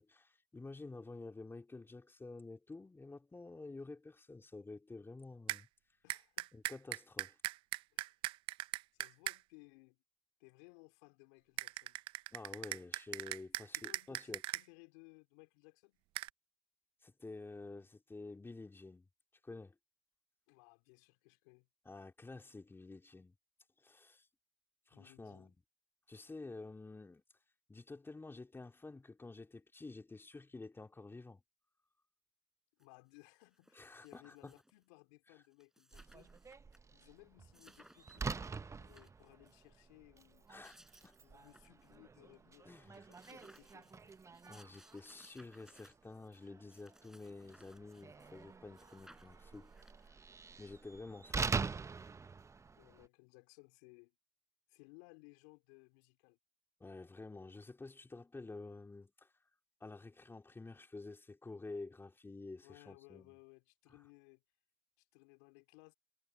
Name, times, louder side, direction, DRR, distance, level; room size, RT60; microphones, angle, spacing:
voice 1, 0.0-5.7 6.5-7.4 12.3-14.4 17.0-19.1 19.4-19.7 21.8-23.3 23.8-24.3 24.9-25.5 26.1-27.2 27.7-31.4 33.7-34.5 40.5-40.7 41.0-41.2 42.6-43.1 44.4-49.7 50.1-50.2 50.6-51.6 56.8-59.3 59.8-63.4, left 3 dB, 25° left, 3.4 m, -50 dB
sound 1, 5.5-5.6 6.1-9.4 11.6-14.6 16.1-16.3, right 19 dB, 75° right, 0.6 m, -39 dB
voice 2, 6.0-6.5 7.9-8.1 8.9-10.0 10.4-12.0 13.8-16.0 20.5-21.7 24.9-25.5 32.8-36.4 36.9-40.5 41.2-44.1 52.7-54.2 54.7-56.4 62.6-64.4 65.0-65.9, left 29 dB, 85° left, 3.6 m, -62 dB
sound 2, 32.8-32.9 33.2-34.8 35.3-35.4 35.5-36.8 37.1-37.2 37.5-38.3 38.7-39.6 40.3-42.0 42.3-42.4 42.7-48.5 48.7-50.3, right 1 dB, 5° right, 4.3 m, -65 dB
Slam, 35.9-53.1, right 5 dB, 35° right, 0.9 m, -45 dB
hypercardioid pair, 45°, 9 cm